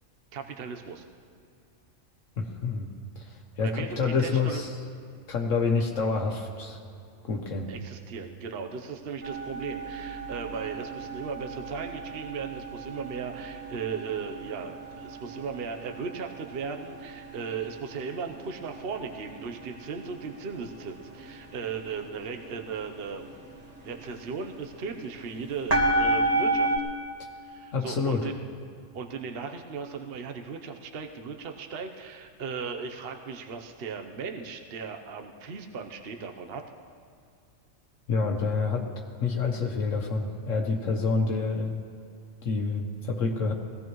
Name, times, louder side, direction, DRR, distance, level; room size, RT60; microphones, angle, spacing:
voice 1, 0.3-1.1 3.6-4.6 7.7-23.3 23.8-26.7 27.4-28.4 28.9-36.7, right 5 dB, 55° right, 5 dB, 1.0 m, -37 dB
voice 2, 2.4-2.9 3.2-4.7 5.3-6.8 7.3-7.7 27.7-28.3 38.1-38.9 39.2-41.8 42.4-43.5, left 4 dB, 80° left, 2 dB, 1.4 m, -28 dB
sound 1, 9.2-26.8, right 2 dB, 30° right, 1.7 m, -33 dB
21.0 x 16.5 x 3.1 m, 2.4 s
omnidirectional pair, 1.3 m